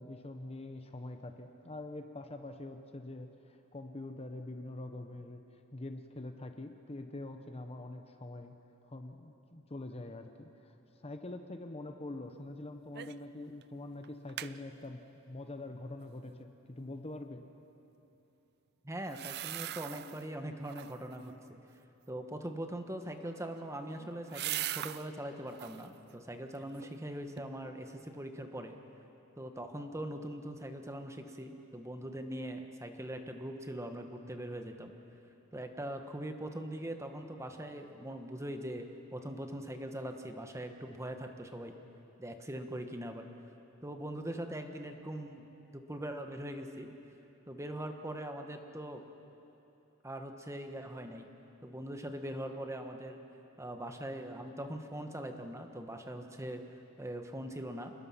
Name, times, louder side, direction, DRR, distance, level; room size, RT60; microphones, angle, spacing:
voice 1, 0.0-3.3 3.7-5.4 5.7-8.5 8.9-10.7 11.0-17.4, left 2 dB, 30° left, 6 dB, 1.0 m, -44 dB
sound 1, 13.0-13.3 13.6-13.7 14.0-14.5 19.0-20.3 20.6-21.2 23.1-25.1 25.5-25.9 26.4-27.0 27.4-27.5, right 13 dB, 45° right, 0.4 m, -41 dB
voice 2, 18.8-21.3 22.1-28.7 29.4-34.9 35.5-41.7 42.2-43.2 43.8-46.9 47.5-49.0 50.0-51.3 51.6-53.2 53.6-57.9, right 1 dB, 15° right, 5 dB, 1.3 m, -41 dB
28.5 x 20.0 x 5.8 m, 3.0 s
head